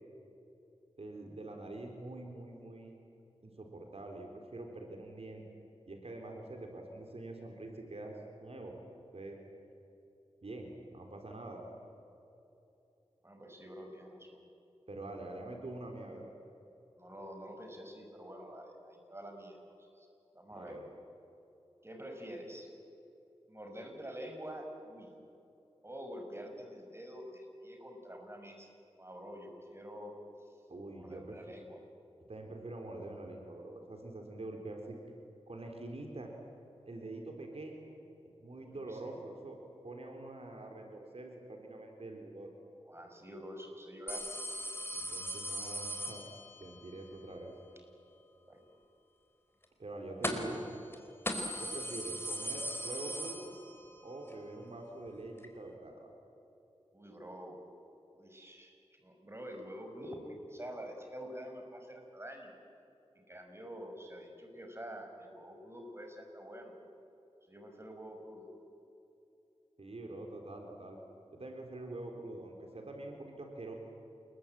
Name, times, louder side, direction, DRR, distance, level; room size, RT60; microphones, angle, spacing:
voice 1, 1.0-2.9 3.4-5.4 5.9-8.7 9.1-9.4 10.4-11.6 14.9-16.3 20.5-20.9 30.7-31.4 32.3-35.0 35.5-36.3 36.9-37.9 38.4-39.6 39.8-42.5 44.9-46.3 46.6-47.5 49.8-50.7 51.6-53.5 54.0-56.1 69.8-71.0 71.3-73.7, right 2 dB, 65° right, 2 dB, 3.9 m, -45 dB
voice 2, 13.2-14.5 17.0-20.1 20.3-20.8 21.8-22.7 23.5-25.2 25.8-28.7 29.0-30.1 30.4-30.5 30.9-31.8 38.7-39.2 42.9-44.3 48.5-48.8 56.9-57.6 58.1-58.7 59.0-62.5 63.1-66.7 67.5-68.5, equal, 25° right, 3 dB, 6.0 m, -47 dB
sound 1, 44.1-46.8 50.2-50.6 50.9-51.0 51.3-54.0 54.3-54.4 55.4-55.5, equal, 20° left, 4.2 m, -38 dB
29.0 x 22.0 x 9.1 m, 2.8 s
wide cardioid pair, 55°, 11 cm